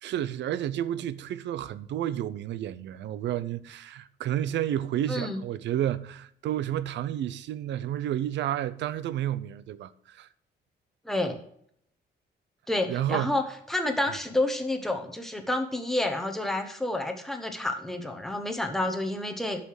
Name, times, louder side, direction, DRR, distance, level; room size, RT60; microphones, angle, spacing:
voice 1, 0.0-10.3 12.9-13.3, right 11 dB, 80° right, 0.6 m, -31 dB
voice 2, 5.1-5.4 11.0-11.4 12.7-13.4 13.7-19.6, left 1 dB, ahead, 1.2 m, -29 dB
11.5 x 5.8 x 4.8 m
cardioid pair, 170°, 18 cm